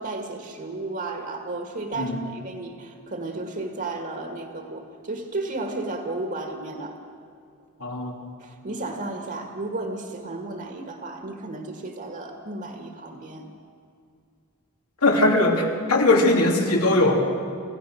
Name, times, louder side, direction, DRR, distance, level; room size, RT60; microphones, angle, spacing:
voice 1, 0.0-7.0 8.4-13.4, right 2 dB, 45° right, 3 dB, 1.8 m, -33 dB
voice 2, 7.8-8.3 15.0-17.2, left 2 dB, 85° left, 1 dB, 2.9 m, -20 dB
27.5 x 15.5 x 6.3 m, 2.4 s
head